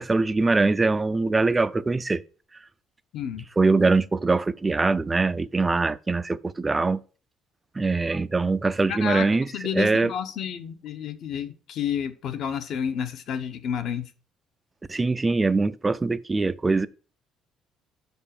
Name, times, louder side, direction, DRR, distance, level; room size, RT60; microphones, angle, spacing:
voice 1, 0.0-2.2 3.6-7.0 7.8-10.1 14.9-16.9, right 3 dB, 15° right, 0.4 m, -23 dB
voice 2, 3.1-3.4 8.9-9.2 9.5-14.1, left 8 dB, 55° left, 0.9 m, -30 dB
6.0 x 5.4 x 6.6 m
cardioid pair, 170°, 0 cm